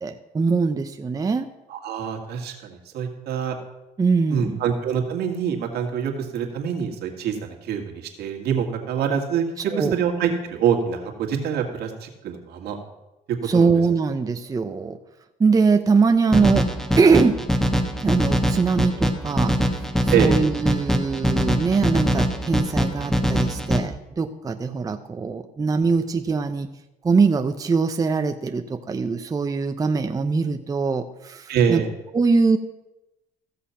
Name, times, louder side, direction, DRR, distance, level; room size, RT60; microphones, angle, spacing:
voice 1, 0.0-1.5 4.0-4.6 9.7-10.0 13.4-15.0 15.4-16.7 17.0-17.4 18.0-19.6 20.0-26.7 27.0-31.8 32.1-32.6, right 4 dB, 20° right, 7 dB, 0.6 m, -22 dB
voice 2, 1.7-3.6 4.3-12.8 13.3-13.7 20.1-20.3 31.5-31.9, right 7 dB, 75° right, 3 dB, 1.9 m, -25 dB
sound 1, 16.3-23.8, equal, 5° left, 1.1 m, -22 dB
15.0 x 6.7 x 5.7 m, 0.96 s
cardioid pair, 110°, 17 cm